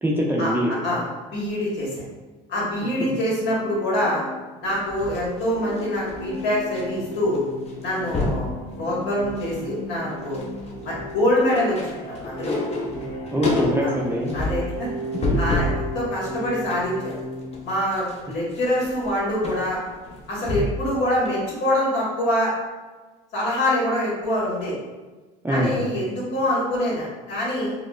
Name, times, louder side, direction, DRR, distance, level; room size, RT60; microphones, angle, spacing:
voice 1, 0.0-0.7 13.3-14.3 15.3-15.4 25.4-25.8, equal, 10° right, -3 dB, 0.5 m, -23 dB
voice 2, 0.8-2.0 2.5-4.2 4.6-7.4 7.8-10.4 10.8-12.5 13.8-13.9 14.3-14.9 15.3-17.1 17.6-19.8 20.3-22.5 23.3-24.7 25.5-27.7, left 1 dB, 65° left, -5 dB, 1.5 m, -25 dB
sound 1, 3.4-17.5, equal, 90° left, 0.7 m, -36 dB
sound 2, 4.7-6.8 7.1-7.4 7.7-8.5 9.0-9.7 10.0-15.8 16.3-20.9 21.3-21.4, left 2 dB, 35° left, 0.7 m, -29 dB
4.6 x 2.0 x 2.3 m, 1.3 s
supercardioid pair, 90°, 19 cm